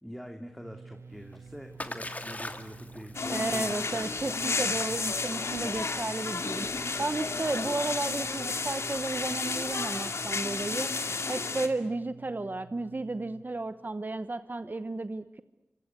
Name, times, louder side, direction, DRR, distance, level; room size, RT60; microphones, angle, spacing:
voice 1, 0.0-3.7, equal, ahead, 4 dB, 2.5 m, -44 dB
sound 1, 0.6-13.4, right 5 dB, 85° right, 1.6 m, -50 dB
Splash splatter, 1.1-10.9, left 2 dB, 35° left, 2.4 m, -45 dB
sound 2, 3.1-11.7, left 4 dB, 80° left, 2.3 m, -32 dB
voice 2, 3.3-15.4, right 2 dB, 45° right, 12 dB, 1.0 m, -33 dB
28.0 x 25.0 x 8.2 m, 0.99 s
wide cardioid pair, 55°, 5 cm